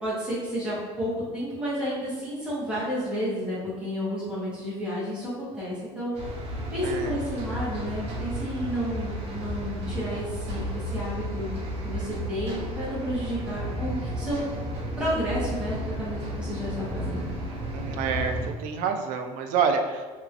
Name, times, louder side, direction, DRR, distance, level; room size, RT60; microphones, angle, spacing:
voice 1, 0.0-6.1 6.7-11.5 11.8-14.4 15.0-17.3, equal, 5° right, -9 dB, 1.1 m, -31 dB
sound 1, 6.1-18.5, equal, 50° right, 0.7 m, -33 dB
voice 2, 6.8-7.2 17.7-20.2, right 6 dB, 85° right, 6 dB, 0.4 m, -28 dB
3.0 x 2.9 x 2.4 m, 1.4 s
cardioid pair, 170°, 13 cm